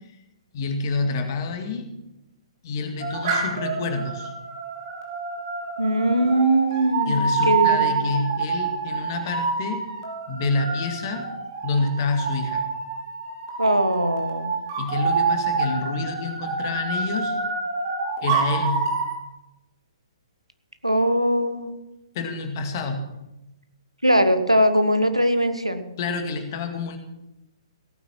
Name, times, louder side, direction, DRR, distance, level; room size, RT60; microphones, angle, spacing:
voice 1, 0.5-1.9 2.6-4.3 7.1-9.9 10.3-11.3 11.6-12.7 14.8-17.4 18.2-18.9 22.1-23.2 26.0-27.0, left 3 dB, 35° left, 6 dB, 2.1 m, -28 dB
sound 1, 3.0-19.1, right 5 dB, 45° right, 3.0 m, -27 dB
voice 2, 5.8-8.0 13.6-14.5 20.8-21.8 24.0-25.8, right 1 dB, 90° right, 9 dB, 1.4 m, -21 dB
17.0 x 9.3 x 6.1 m, 0.93 s
figure-of-eight pair, 125°, 3 cm